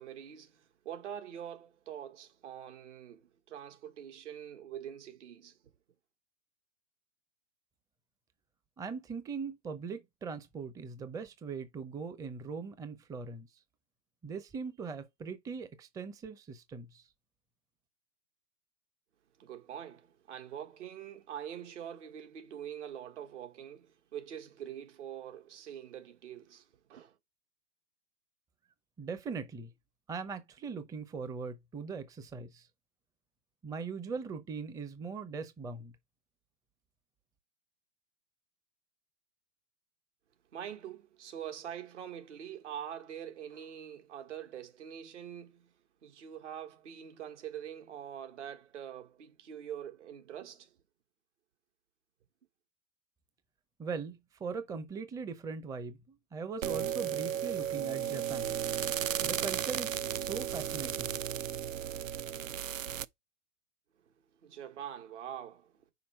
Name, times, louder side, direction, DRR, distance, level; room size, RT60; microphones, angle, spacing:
voice 1, 0.0-5.6 19.4-27.1 40.5-45.7 46.0-50.8 64.4-65.7, right 9 dB, 65° right, 1.6 m, -44 dB
voice 2, 8.8-13.5 14.2-17.1 29.0-29.7 30.1-32.7 33.6-35.9 53.8-58.5 59.2-61.2, right 5 dB, 10° right, 0.6 m, -40 dB
sound 1, 56.6-63.0, right 10 dB, 90° right, 0.5 m, -34 dB
5.8 x 4.4 x 4.4 m
hypercardioid pair, 110°, 38 cm